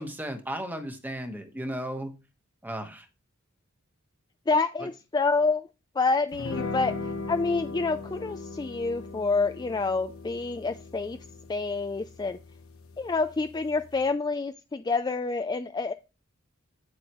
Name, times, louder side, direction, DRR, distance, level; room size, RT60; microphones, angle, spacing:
voice 1, 0.0-2.1 2.6-3.0 4.8-4.9, right 1 dB, 10° right, 6 dB, 1.2 m, -35 dB
voice 2, 4.5-5.6 6.0-6.9 7.3-11.2 11.5-12.4 13.0-15.9, left 3 dB, 20° left, 9 dB, 0.3 m, -27 dB
sound 1, 6.3-14.1, left 3 dB, 75° left, 1.0 m, -39 dB
8.8 x 7.8 x 3.0 m, 0.30 s
head